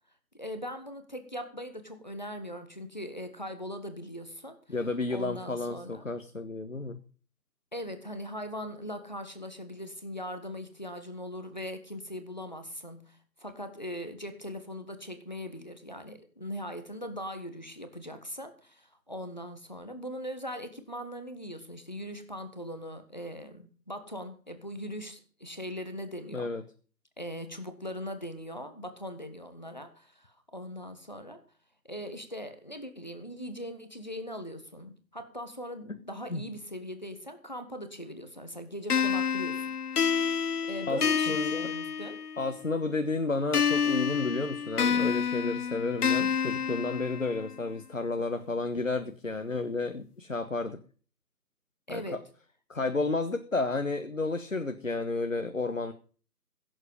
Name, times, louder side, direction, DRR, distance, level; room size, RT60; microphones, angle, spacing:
voice 1, 0.3-4.6 5.1-6.0 7.7-26.4 27.2-31.4 31.8-39.7 40.6-42.2 51.9-52.2, equal, 25° left, 8 dB, 1.4 m, -40 dB
voice 2, 4.7-7.0 26.3-26.6 36.3-36.4 40.9-41.7 42.4-50.8 51.9-52.0 52.7-55.9, left 3 dB, 50° left, 8 dB, 1.3 m, -31 dB
sound 1, 38.9-42.5 43.5-47.5, left 7 dB, 65° left, 0.6 m, -28 dB
16.5 x 8.0 x 5.4 m, 0.40 s
figure-of-eight pair, 175°, 49 cm